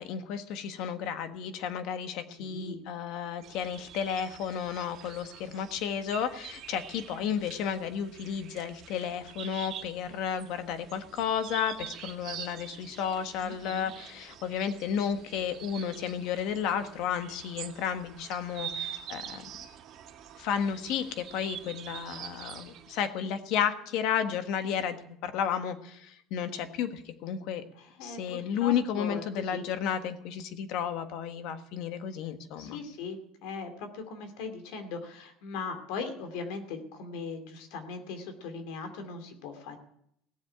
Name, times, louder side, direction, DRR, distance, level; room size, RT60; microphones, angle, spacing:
voice 1, 0.0-19.4 20.4-27.6 28.0-32.8, left 8 dB, 60° left, 8 dB, 1.4 m, -32 dB
voice 2, 2.4-2.8 13.4-13.9 27.8-29.6 32.6-39.8, left 4 dB, 80° left, 6 dB, 2.5 m, -39 dB
sound 1, 3.4-23.1, right 9 dB, 45° right, 1.7 m, -45 dB
17.5 x 7.4 x 8.8 m, 0.73 s
cardioid pair, 155°, 0 cm